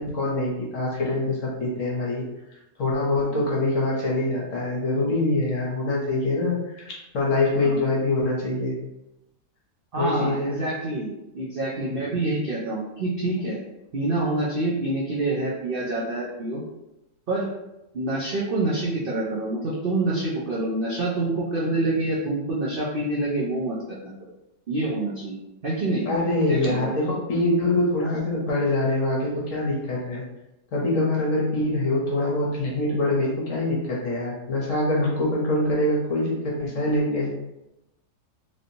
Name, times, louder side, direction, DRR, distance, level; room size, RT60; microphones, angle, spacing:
voice 1, 0.0-2.2 2.8-6.8 7.1-8.8 10.0-10.6 26.1-30.2 30.7-37.3, left 2 dB, 60° left, -4 dB, 1.1 m, -24 dB
voice 2, 9.9-13.6 13.9-16.6 17.3-17.5 17.9-24.1 24.7-26.1 26.5-26.9, right 2 dB, 75° right, -5 dB, 0.5 m, -27 dB
3.1 x 2.8 x 2.7 m, 0.92 s
omnidirectional pair, 1.7 m